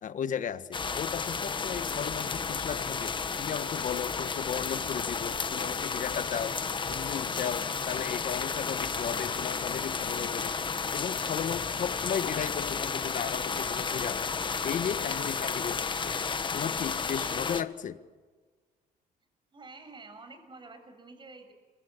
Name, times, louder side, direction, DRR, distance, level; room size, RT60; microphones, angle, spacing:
voice 1, 0.0-3.1 3.4-6.6 6.9-10.6 10.9-14.3 14.6-16.2 16.5-18.0, left 8 dB, 50° left, 12 dB, 1.5 m, -35 dB
sound 1, 0.7-17.6, left 5 dB, 30° left, 1.4 m, -32 dB
voice 2, 19.5-21.5, right 3 dB, 30° right, 7 dB, 6.9 m, -48 dB
29.0 x 24.0 x 8.4 m, 1.4 s
cardioid pair, 110°, 17 cm